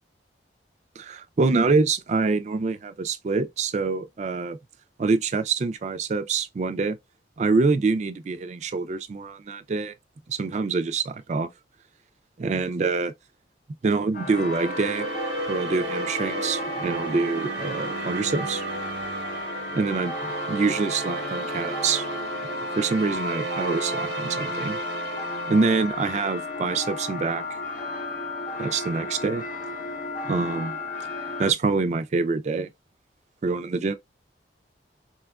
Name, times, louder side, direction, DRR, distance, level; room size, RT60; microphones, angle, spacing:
voice 1, 1.0-4.6 5.0-7.0 7.4-9.9 10.3-11.5 12.4-13.1 13.8-15.1 15.5-18.6 19.7-22.1 22.8-24.8 25.5-27.4 28.6-29.4 30.3-30.8 31.4-32.7 33.4-33.9, right 4 dB, 40° right, 0.3 m, -25 dB
sound 1, 14.1-31.5, left 3 dB, 45° left, 0.6 m, -34 dB
sound 2, 14.2-26.6, right 3 dB, 85° right, 0.9 m, -33 dB
4.3 x 2.3 x 2.2 m
head